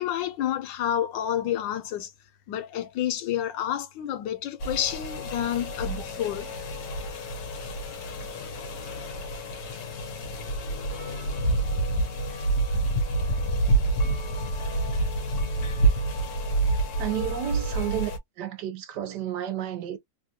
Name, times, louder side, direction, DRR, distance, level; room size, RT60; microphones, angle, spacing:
voice 1, 0.0-2.1 2.5-6.5, left 11 dB, 90° left, 1.4 m, -29 dB
sound 1, 4.6-18.2, right 2 dB, 70° left, 1.4 m, -28 dB
voice 2, 17.0-18.1 18.4-20.0, right 11 dB, 70° right, 1.2 m, -31 dB
3.4 x 2.3 x 2.8 m
omnidirectional pair, 2.0 m